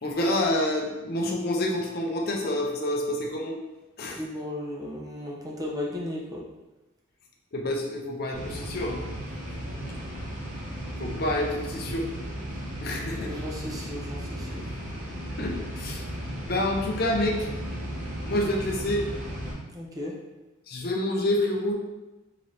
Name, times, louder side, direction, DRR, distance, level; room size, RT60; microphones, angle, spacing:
voice 1, 0.0-3.5 4.0-4.2 7.5-9.0 11.0-12.1 12.8-13.3 15.4-16.1 16.4-17.5 18.2-19.1 20.7-21.7, left 1 dB, 50° left, 0 dB, 0.6 m, -28 dB
voice 2, 4.1-6.4 13.2-14.6 19.7-20.1, left 1 dB, 20° right, -3 dB, 0.6 m, -35 dB
sound 1, 8.3-19.5, equal, 40° right, 1.1 m, -35 dB
3.7 x 2.7 x 3.2 m, 1.1 s
head